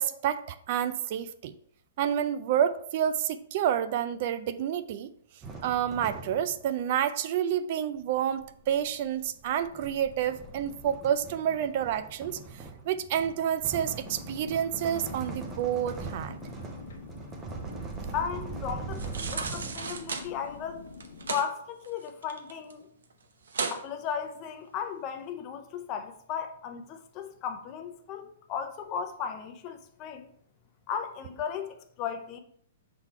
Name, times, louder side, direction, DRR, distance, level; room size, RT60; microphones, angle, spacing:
voice 1, 0.0-1.5 2.0-5.1 5.6-16.4, right 9 dB, 45° right, 0.4 m, -29 dB
sound 1, 5.4-6.7 7.9-20.2, right 4 dB, 15° right, 0.8 m, -41 dB
sound 2, 13.8-21.4, left 4 dB, 80° left, 1.2 m, -46 dB
voice 2, 18.1-20.9 21.3-22.9 23.7-30.3 30.9-32.4, left 7 dB, 30° left, 0.6 m, -36 dB
sound 3, 18.9-20.3 20.9-21.5 21.8-22.7 23.0-23.1 23.5-23.8 24.3-24.4, right 5 dB, 85° right, 0.8 m, -34 dB
5.8 x 3.9 x 4.4 m
hypercardioid pair, 150°, 0 cm